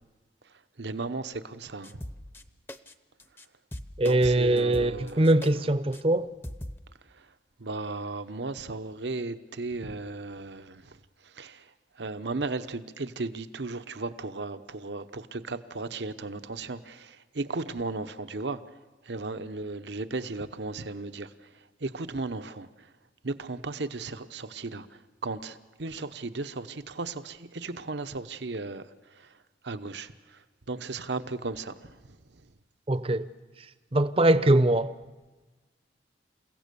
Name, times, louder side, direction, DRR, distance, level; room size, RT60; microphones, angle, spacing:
voice 1, 0.8-2.0 4.0-5.5 7.1-7.3 7.6-11.7 12.0-18.6 19.0-21.5 21.8-22.9 23.2-29.4 29.6-30.4 30.7-32.0, right 3 dB, 75° right, 0.9 m, -36 dB
sound 1, 1.8-2.4 2.7-2.9 3.2-3.5 3.7-5.5 5.9-6.0 6.4-6.8, equal, 10° left, 0.7 m, -40 dB
voice 2, 4.0-6.3 32.9-33.3 33.9-34.9, right 1 dB, 30° right, 0.7 m, -22 dB
29.0 x 16.5 x 6.9 m
head